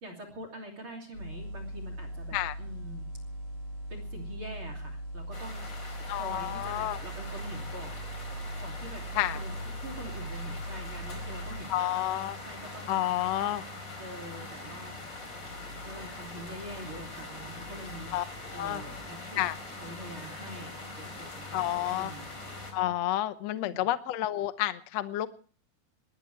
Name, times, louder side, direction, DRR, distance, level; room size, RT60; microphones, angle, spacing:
voice 1, 0.0-3.1 3.9-8.0 8.6-9.1 9.3-13.0 14.0-14.9 15.7-19.4 19.8-20.7 21.0-22.3 23.5-23.9, right 1 dB, 35° right, 5 dB, 3.5 m, -45 dB
sound 1, 1.1-11.6, equal, 85° right, 8.2 m, -40 dB
sound 2, 5.3-22.7, left 2 dB, 30° left, 4.9 m, -44 dB
voice 2, 6.1-7.0 9.1-9.4 11.7-12.4 12.9-13.6 18.1-18.2 18.6-18.8 19.4-19.5 21.5-22.1 22.7-25.3, left 14 dB, 70° left, 12 dB, 1.6 m, -30 dB
sound 3, 6.3-23.0, left 1 dB, 65° right, 6.4 m, -49 dB
21.5 x 19.5 x 3.3 m, 0.40 s
omnidirectional pair, 4.3 m